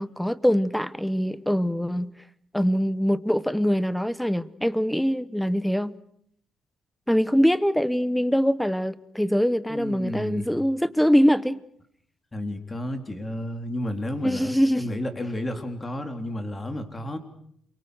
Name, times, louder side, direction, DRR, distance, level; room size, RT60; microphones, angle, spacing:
voice 1, 0.0-2.1 2.5-5.9 7.1-11.6 14.2-15.0, equal, 5° left, 1.1 m, -23 dB
voice 2, 9.7-10.5 12.3-17.2, left 1 dB, 20° left, 3.7 m, -32 dB
28.0 x 23.5 x 6.5 m
cardioid pair, 90°, 0 cm